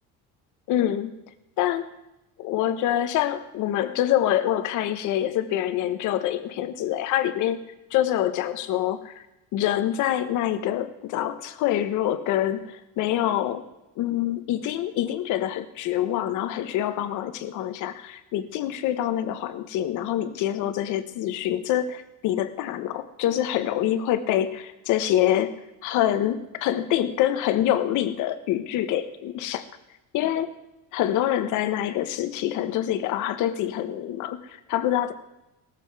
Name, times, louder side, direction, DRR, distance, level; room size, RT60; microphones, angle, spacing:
voice 1, 0.7-1.1 1.6-1.9 2.4-7.6 7.9-9.2 9.5-13.7 14.0-29.7 30.1-30.5 30.9-35.1, left 12 dB, 60° left, 11 dB, 1.1 m, -26 dB
17.5 x 14.0 x 4.8 m, 0.94 s
cardioid pair, 155°, 34 cm